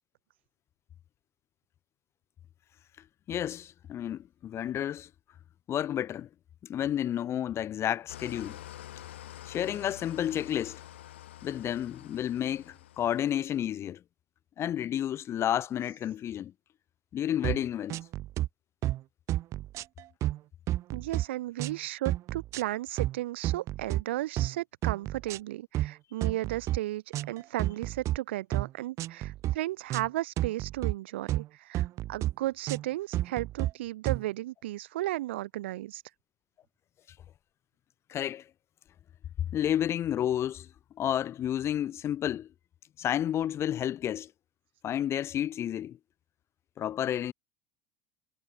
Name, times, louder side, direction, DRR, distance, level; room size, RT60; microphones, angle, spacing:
voice 1, 3.3-5.1 5.7-6.3 6.6-8.6 9.5-10.8 11.4-14.0 14.6-16.5 17.1-18.0 38.1-38.4 39.5-40.7 41.0-42.5 43.0-44.3 44.8-46.0 46.8-47.3, left 10 dB, 45° left, 7.2 m, -31 dB
Engine starting / Idling, 8.1-13.5, left 13 dB, 85° left, 7.2 m, -47 dB
sound 1, 17.4-17.6 17.9-18.5 18.8-19.0 19.3-20.4 20.7-21.3 21.6-21.8 22.1-22.6 23.0-23.2 23.4-24.0 24.4-24.6 24.8-25.4 25.7-25.9 26.2-26.8 27.1-28.2 28.5-28.7 29.0-29.6 29.9-30.1 30.4-30.9 31.3-31.5 31.7-32.3 32.7-32.9 33.1-33.7 34.1-34.2, right 14 dB, 55° right, 2.0 m, -30 dB
voice 2, 20.9-36.0, right 16 dB, 80° right, 1.8 m, -34 dB
hypercardioid pair, 80°, 6 cm